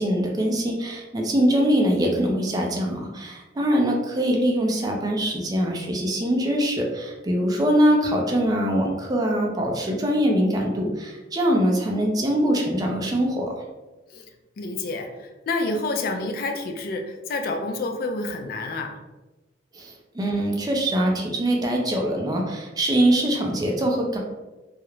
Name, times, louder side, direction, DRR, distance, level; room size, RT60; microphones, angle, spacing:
voice 1, 0.0-13.6 19.7-24.2, equal, 20° right, 0 dB, 0.4 m, -23 dB
voice 2, 14.6-18.9, left 2 dB, 55° left, 4 dB, 0.3 m, -28 dB
2.4 x 2.0 x 3.0 m, 1.1 s
head